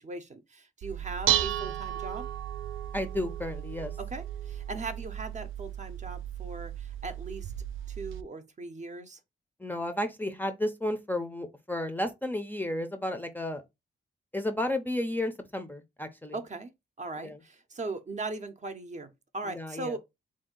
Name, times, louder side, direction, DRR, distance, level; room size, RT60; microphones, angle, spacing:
voice 1, 0.0-2.3 4.0-7.5 7.9-9.2 16.3-16.7 17.0-20.0, right 3 dB, 35° right, 0.6 m, -39 dB
Dishes pots and pans, 0.8-8.2, right 12 dB, 85° right, 0.4 m, -34 dB
voice 2, 2.9-3.9 9.6-13.6 14.3-16.4 17.2-17.4 19.5-20.0, left 1 dB, 10° left, 0.5 m, -32 dB
3.6 x 2.6 x 3.7 m
wide cardioid pair, 125°, 20 cm